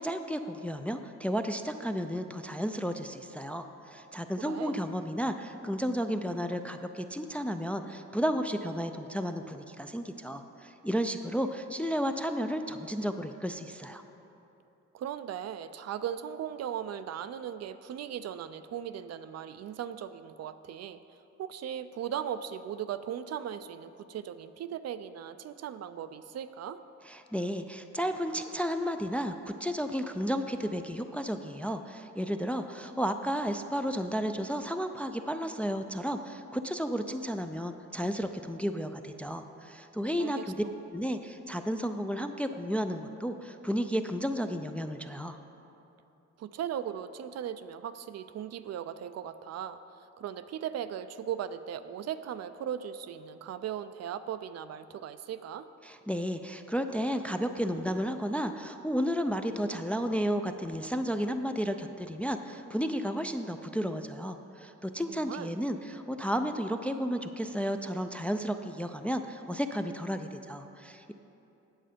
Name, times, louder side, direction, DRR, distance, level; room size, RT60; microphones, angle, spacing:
voice 1, 0.0-14.0 27.1-40.5 40.9-45.4 55.8-71.1, equal, 5° left, 7 dB, 0.3 m, -33 dB
voice 2, 4.4-4.8 14.9-26.8 40.2-40.4 46.4-55.7 65.1-65.5, right 9 dB, 55° right, 12 dB, 0.4 m, -38 dB
8.9 x 7.4 x 5.1 m, 2.9 s
cardioid pair, 90°, 30 cm